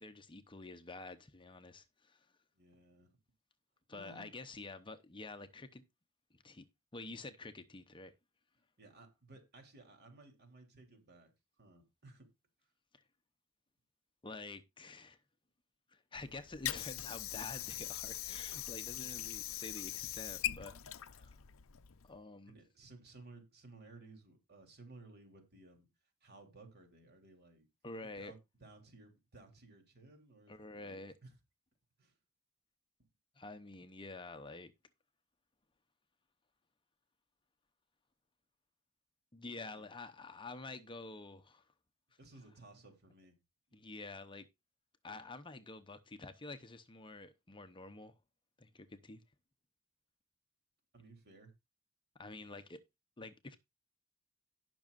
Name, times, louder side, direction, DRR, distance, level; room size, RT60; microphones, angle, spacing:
voice 1, 0.0-2.3 3.9-5.8 6.4-6.6 6.9-8.1 12.9-13.0 14.2-15.2 15.9-21.4 22.0-22.5 27.8-28.3 30.5-31.1 33.4-34.7 39.3-41.6 43.7-44.5 45.0-48.1 48.6-49.2 52.2-52.8 53.2-53.6, left 3 dB, 25° left, 0.8 m, -48 dB
voice 2, 2.5-3.1 3.9-4.3 8.8-11.3 11.6-12.3 22.5-25.9 26.2-27.7 28.0-31.4 32.0-32.1 39.7-39.9 42.2-43.4 43.7-43.8 50.9-51.5, right 2 dB, 50° right, 3.3 m, -58 dB
Water / Sink (filling or washing), 16.1-22.2, left 13 dB, 65° left, 0.7 m, -42 dB
18.0 x 6.2 x 2.5 m
head